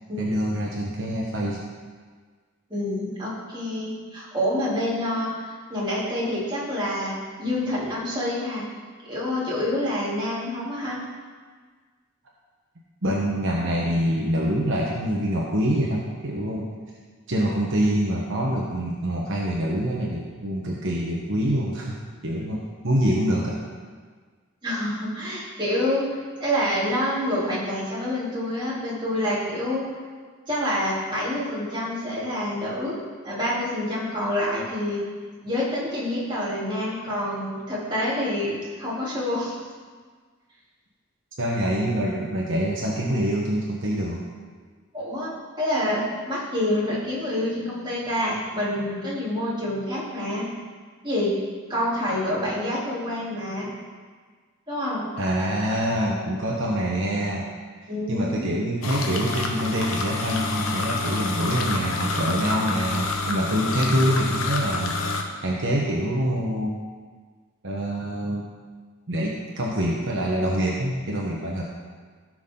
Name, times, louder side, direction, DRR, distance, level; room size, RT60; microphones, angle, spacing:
voice 1, 0.2-1.6 13.0-16.7 17.3-22.0 22.2-23.6 41.4-44.3 52.1-52.2 55.2-57.5 57.8-65.0 65.4-66.8 67.6-68.4 69.1-71.6, equal, 65° right, -2 dB, 1.2 m, -25 dB
voice 2, 2.7-8.7 9.0-11.0 24.6-29.9 30.5-33.0 33.2-35.1 35.4-39.5 44.9-50.5 51.0-51.4 51.7-53.7 54.7-55.1 57.9-58.5, left 1 dB, 25° right, -8 dB, 3.6 m, -27 dB
sound 1, 58.8-65.2, left 3 dB, 80° left, 1.1 m, -28 dB
16.5 x 6.3 x 3.9 m, 1.5 s
head